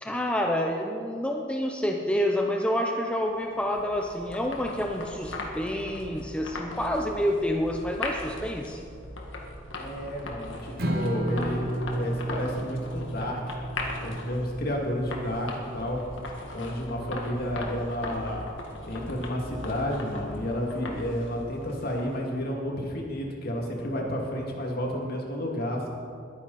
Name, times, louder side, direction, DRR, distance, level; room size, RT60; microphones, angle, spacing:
voice 1, 0.0-8.8, equal, 5° left, 2 dB, 0.7 m, -28 dB
sound 1, 3.3-22.3, left 2 dB, 85° left, 1.9 m, -39 dB
voice 2, 9.8-13.4 14.0-16.0 16.5-18.5 18.8-25.9, left 1 dB, 55° left, -1 dB, 2.5 m, -31 dB
Strum, 10.8-17.1, right 1 dB, 55° right, 1.3 m, -33 dB
21.5 x 9.9 x 4.3 m, 2.5 s
head